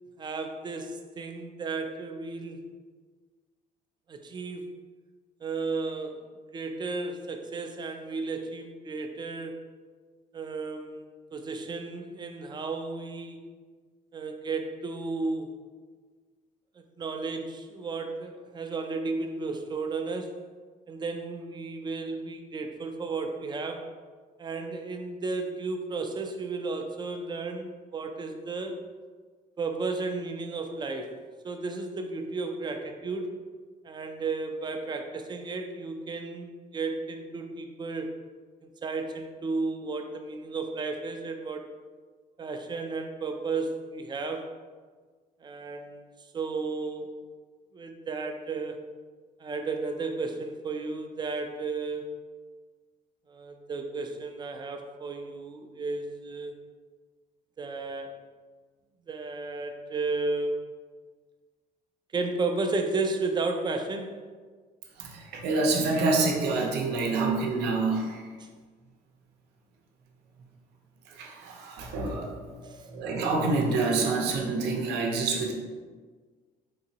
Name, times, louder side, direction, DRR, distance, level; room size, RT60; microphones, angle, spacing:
voice 1, 0.2-2.6 4.1-4.7 5.4-6.2 6.5-9.7 10.3-11.1 11.3-13.4 14.1-15.5 16.8-20.4 20.9-23.9 24.4-28.8 29.6-31.2 31.4-33.3 33.8-38.1 38.8-41.6 42.4-44.5 45.4-46.0 46.3-47.1 47.7-48.8 49.4-52.1 53.3-56.5 57.6-58.1 59.1-60.6 62.1-64.2 68.4-68.5 72.6-72.8, right 3 dB, 25° right, 5 dB, 0.3 m, -33 dB
voice 2, 65.0-68.3 71.1-72.5 72.8-75.5, right 3 dB, 80° right, 1 dB, 0.6 m, -27 dB
3.8 x 2.8 x 2.8 m, 1.5 s
cardioid pair, 110°, 17 cm